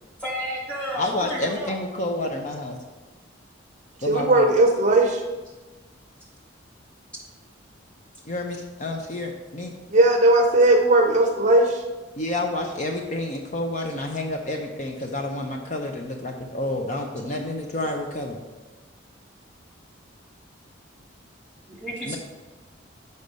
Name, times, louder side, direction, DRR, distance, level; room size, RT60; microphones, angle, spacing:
voice 1, 0.2-1.8 21.7-22.2, equal, 5° left, -5 dB, 2.1 m, -32 dB
voice 2, 0.9-2.8 4.0-4.5 8.3-9.7 12.2-18.4 22.1-22.2, left 1 dB, 40° left, 2 dB, 0.6 m, -29 dB
voice 3, 4.1-5.2 9.9-11.8, right 2 dB, 40° right, 3 dB, 0.6 m, -18 dB
6.5 x 5.4 x 5.3 m, 1.2 s
head